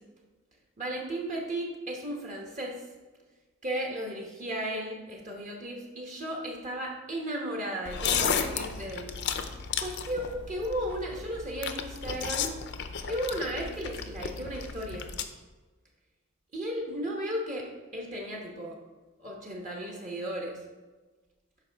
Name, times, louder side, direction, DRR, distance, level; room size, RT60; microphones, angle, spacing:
voice 1, 0.8-2.8 3.6-9.1 9.8-12.5 13.1-15.1 16.5-18.8 19.2-20.6, right 1 dB, 35° right, -1 dB, 1.1 m, -35 dB
sound 1, 7.8-15.2, left 7 dB, 55° left, 0.6 m, -34 dB
12.0 x 4.7 x 3.5 m, 1.3 s
head